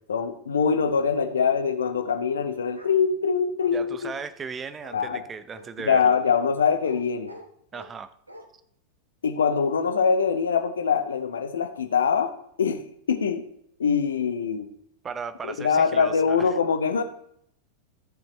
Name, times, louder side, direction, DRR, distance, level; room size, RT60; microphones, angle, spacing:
voice 1, 0.1-4.1 4.9-5.2 5.8-7.3 9.2-12.3 12.6-13.4 13.8-14.7 15.4-17.0, left 6 dB, 65° left, 9 dB, 0.9 m, -23 dB
Bark, 2.7-3.0 3.6-4.1 4.8-5.0 5.5-5.7 6.2-6.3 6.8-7.0 7.3-7.9 8.3-8.4, equal, 85° right, 1.2 m, -46 dB
voice 2, 3.7-6.1 7.7-8.1 15.0-16.5, right 5 dB, 20° right, 13 dB, 0.6 m, -36 dB
14.0 x 7.2 x 3.2 m, 0.70 s
figure-of-eight pair, 90°, 0 cm